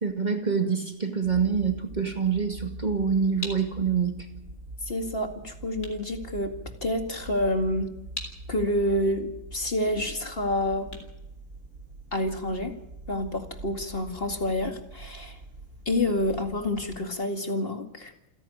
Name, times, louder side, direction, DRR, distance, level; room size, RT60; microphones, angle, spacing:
voice 1, 0.0-4.2, right 6 dB, 30° right, 4 dB, 2.2 m, -26 dB
sound 1, 1.2-17.0, right 2 dB, 75° right, 2.5 m, -44 dB
sound 2, 3.4-12.2, left 2 dB, 60° left, 4.1 m, -45 dB
voice 2, 4.9-6.5 6.8-7.9 8.5-10.9 12.1-12.7 13.1-15.4 15.9-18.1, left 1 dB, 45° left, 4 dB, 2.5 m, -28 dB
28.5 x 11.0 x 9.9 m, 0.87 s
omnidirectional pair, 1.4 m